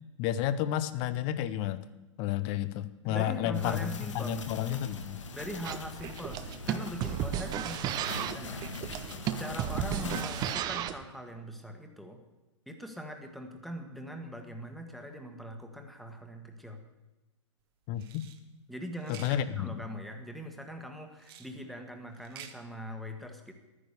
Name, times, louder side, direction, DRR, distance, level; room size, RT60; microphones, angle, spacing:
voice 1, 0.2-1.8 2.2-3.9 4.1-5.2 17.9-18.3 19.1-19.8, left 11 dB, 35° left, 14 dB, 0.8 m, -31 dB
voice 2, 3.1-4.4 5.3-12.2 12.7-16.8 18.7-23.5, equal, ahead, 4 dB, 1.5 m, -42 dB
sound 1, 3.5-10.5, left 3 dB, 75° left, 1.7 m, -42 dB
sound 2, 5.6-11.0, right 10 dB, 25° right, 0.6 m, -34 dB
sound 3, 18.0-18.4 19.0-19.4 21.2-21.5 22.1-22.6, right 9 dB, 50° right, 1.3 m, -49 dB
12.0 x 9.8 x 6.9 m, 1.1 s
hypercardioid pair, 120°, 16 cm